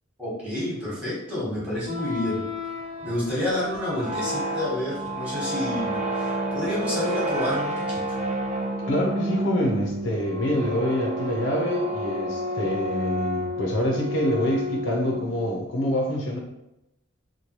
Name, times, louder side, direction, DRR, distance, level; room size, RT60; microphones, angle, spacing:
voice 1, 0.2-2.4 3.0-8.0, left 1 dB, 5° right, -8 dB, 1.1 m, -29 dB
sound 1, 1.8-15.5, equal, 35° right, 0.4 m, -30 dB
voice 2, 8.9-16.4, equal, 65° left, 0 dB, 0.6 m, -26 dB
3.0 x 2.2 x 2.9 m, 0.87 s
head